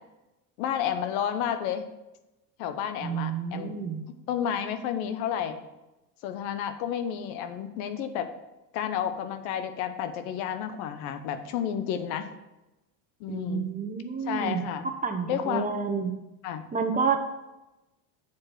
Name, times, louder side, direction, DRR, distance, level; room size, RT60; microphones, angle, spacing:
voice 1, 0.6-1.8 2.6-3.8 4.3-5.6 6.2-8.3 8.7-12.3 13.2-13.7 14.2-14.9 15.2-15.7 16.4-16.6, left 9 dB, 80° left, 9 dB, 1.0 m, -31 dB
voice 2, 3.0-4.0 13.3-14.7 15.0-16.1 16.7-17.3, right 5 dB, 20° right, 5 dB, 0.9 m, -29 dB
7.2 x 4.7 x 6.1 m, 1.0 s
supercardioid pair, 100°, 43 cm